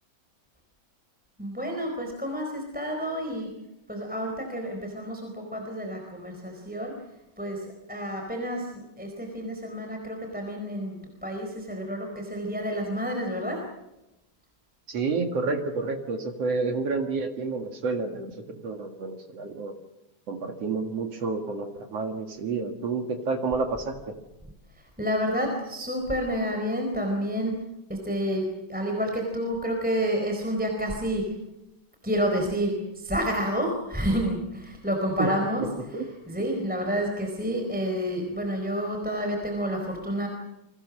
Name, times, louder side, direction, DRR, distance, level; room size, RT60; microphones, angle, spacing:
voice 1, 1.4-3.5 3.9-7.0 7.4-13.7 25.0-27.6 27.9-31.3 32.0-35.6 36.3-40.3, equal, ahead, 1 dB, 3.8 m, -29 dB
voice 2, 14.9-19.7 20.3-24.1 35.2-35.7 35.9-36.1, right 4 dB, 50° right, 5 dB, 2.2 m, -30 dB
29.0 x 24.0 x 6.3 m, 0.93 s
omnidirectional pair, 4.9 m